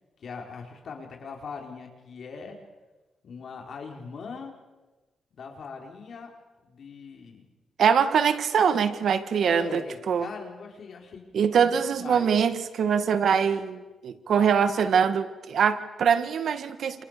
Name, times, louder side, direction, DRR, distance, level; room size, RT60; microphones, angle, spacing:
voice 1, 0.2-2.6 3.2-4.5 5.3-6.3 6.6-7.4 9.4-11.3 11.6-12.4, left 5 dB, 60° left, 2 dB, 5.2 m, -40 dB
voice 2, 7.8-9.8 10.1-10.3 11.3-17.0, right 7 dB, 70° right, 9 dB, 1.9 m, -23 dB
28.5 x 28.5 x 7.0 m, 1.2 s
cardioid pair, 105°, 0 cm